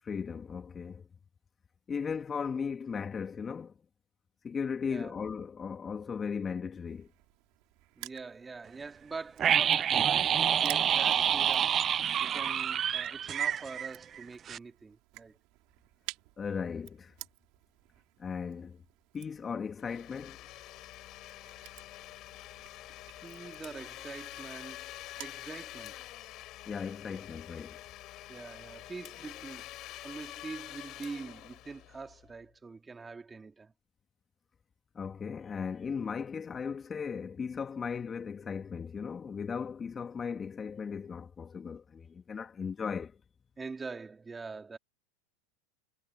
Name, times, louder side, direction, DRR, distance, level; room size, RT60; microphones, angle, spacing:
voice 1, 0.0-1.1 1.9-3.7 4.4-7.1 16.4-17.1 18.2-18.8 19.1-20.4 26.7-27.8 35.0-43.2, left 6 dB, 25° left, 1.9 m, -37 dB
voice 2, 4.8-5.1 7.9-11.8 12.2-15.4 23.2-24.9 25.2-26.0 28.3-29.7 30.0-33.7 43.6-44.8, right 4 dB, 15° right, 2.7 m, -44 dB
Crushing, 6.9-25.4, right 24 dB, 55° right, 4.5 m, -52 dB
sound 1, 9.4-14.2 14.5-14.6, right 9 dB, 30° right, 0.4 m, -27 dB
Domestic sounds home sounds, 19.8-32.4, left 16 dB, 45° left, 4.8 m, -47 dB
hypercardioid pair, 100°, 0 cm